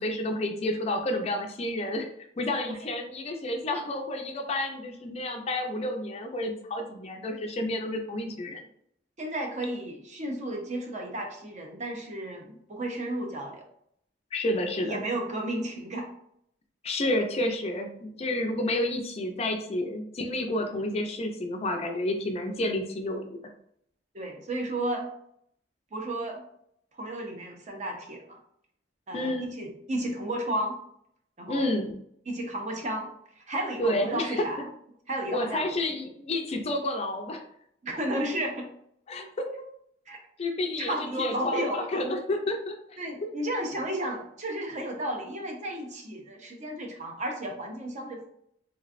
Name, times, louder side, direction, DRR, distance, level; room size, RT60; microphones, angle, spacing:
voice 1, 0.0-2.1 2.4-8.6 14.3-15.0 16.8-23.4 29.1-29.6 31.5-31.9 33.8-34.4 35.3-37.4 39.1-39.4 40.4-43.3, left 1 dB, 35° left, 4 dB, 0.4 m, -30 dB
voice 2, 9.2-13.6 14.8-16.1 24.1-25.1 25.9-26.4 26.9-28.4 29.1-30.7 31.4-31.6 32.3-33.1 33.5-34.7 35.1-35.7 37.8-38.7 39.2-39.3 40.1-40.2 40.8-42.0 43.0-48.3, right 1 dB, 40° right, 2 dB, 0.7 m, -33 dB
3.2 x 3.0 x 2.5 m, 0.70 s
head